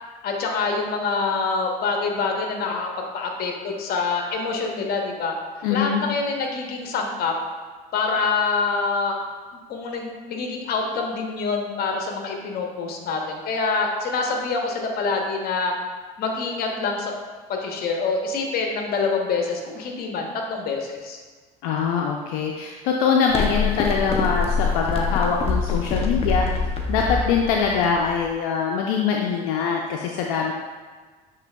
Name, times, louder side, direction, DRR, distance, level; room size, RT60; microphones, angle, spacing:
voice 1, 0.2-2.9 3.1-5.3 5.7-7.3 7.9-9.2 9.7-15.8 16.2-17.1 17.5-21.2, left 4 dB, 55° left, 2 dB, 0.9 m, -26 dB
voice 2, 5.6-6.0 21.6-26.5 26.9-30.5, left 6 dB, 80° left, 0 dB, 0.4 m, -23 dB
sound 1, 23.3-28.4, left 4 dB, 30° left, 0.6 m, -25 dB
6.7 x 3.2 x 2.2 m, 1.4 s
supercardioid pair, 90°, 19 cm